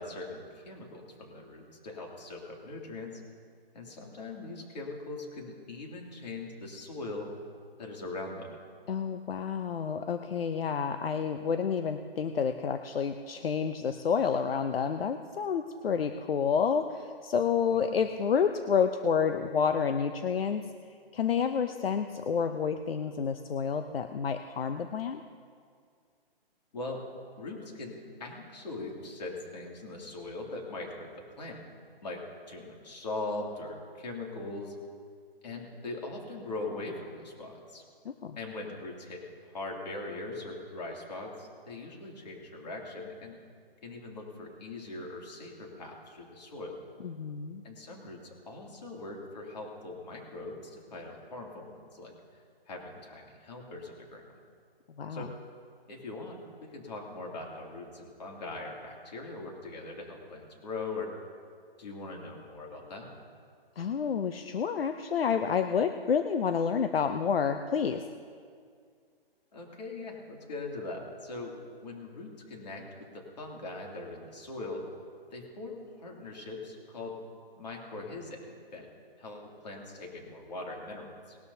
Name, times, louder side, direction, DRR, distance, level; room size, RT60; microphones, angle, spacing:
voice 1, 0.0-3.2 3.7-7.3 7.8-8.6 17.7-18.0 26.7-27.0 27.4-31.6 32.0-32.2 32.5-34.7 35.4-37.8 38.4-43.4 43.8-46.8 47.6-54.4 55.1-55.3 55.9-61.1 61.8-63.1 69.5-71.6 71.8-74.9 75.3-77.2 77.6-78.9 79.2-81.4, left 2 dB, 45° left, -1 dB, 2.7 m, -41 dB
voice 2, 8.9-20.6 21.1-25.2 38.0-38.4 47.0-47.6 55.0-55.3 63.8-68.0, left 6 dB, 70° left, 7 dB, 0.7 m, -29 dB
20.0 x 12.5 x 2.8 m, 2.1 s
hypercardioid pair, 170°, 30 cm